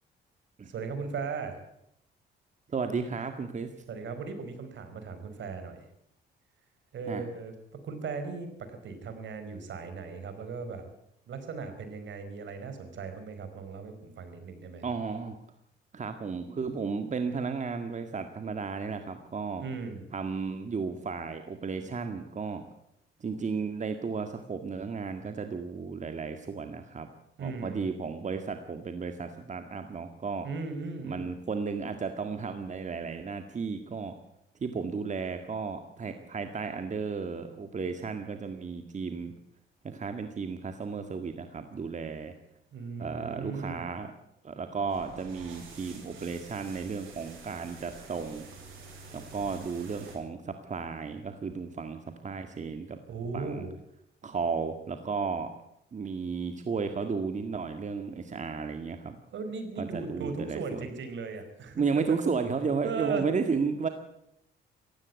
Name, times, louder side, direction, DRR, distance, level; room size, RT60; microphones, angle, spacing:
voice 1, 0.7-1.6 3.9-5.9 6.9-7.5 7.8-10.8 11.3-14.9 19.6-20.1 27.4-27.9 30.4-31.3 42.7-43.8 53.1-53.7 59.3-62.2 62.8-63.3, right 4 dB, 70° right, 8 dB, 4.8 m, -37 dB
voice 2, 2.7-3.7 7.1-7.2 14.8-15.4 15.9-19.6 20.1-22.6 23.2-27.1 27.4-30.5 31.0-34.1 34.6-39.3 39.8-42.3 43.0-44.1 44.4-48.4 49.1-53.0 53.3-53.7 54.2-55.5 55.9-59.2 59.8-60.9 61.8-63.9, right 5 dB, 35° right, 7 dB, 1.9 m, -33 dB
sound 1, 44.8-50.2, right 4 dB, 85° right, 7.5 m, -48 dB
17.5 x 15.5 x 9.7 m, 0.77 s
cardioid pair, 90°, 20 cm